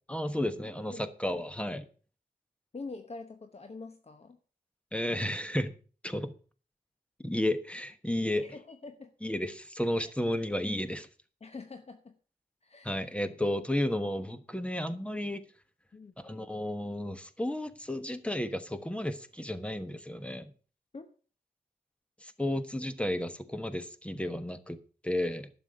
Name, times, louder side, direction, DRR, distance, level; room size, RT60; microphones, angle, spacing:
voice 1, 0.1-1.9 4.9-5.7 6.0-6.3 7.2-8.4 9.2-11.1 12.8-15.4 16.2-20.5 22.2-25.5, left 1 dB, 5° left, 10 dB, 1.2 m, -33 dB
voice 2, 2.7-4.4 8.1-9.1 11.4-12.1 12.6-13.1 15.9-16.1 20.9-21.1, left 3 dB, 40° left, 7 dB, 1.0 m, -45 dB
11.5 x 7.0 x 6.9 m, 0.39 s
wide cardioid pair, 105°, 16 cm